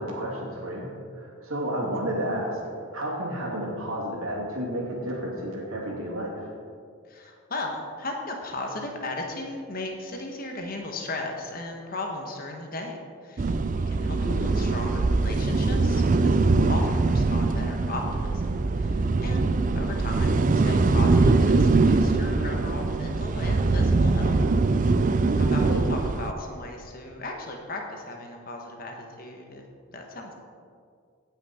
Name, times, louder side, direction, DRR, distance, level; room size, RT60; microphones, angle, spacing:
voice 1, 0.0-2.6 2.9-6.5 14.2-14.6 25.6-25.8, equal, 80° right, -2 dB, 2.6 m, -31 dB
voice 2, 7.1-13.6 13.9-18.5 18.8-19.5 19.7-24.4 24.6-24.9 25.3-29.6 29.9-30.3, left 2 dB, 45° left, 2 dB, 1.3 m, -36 dB
sound 1, 13.4-26.3, right 3 dB, 40° right, 0.4 m, -22 dB
16.5 x 6.0 x 4.3 m, 2.2 s
head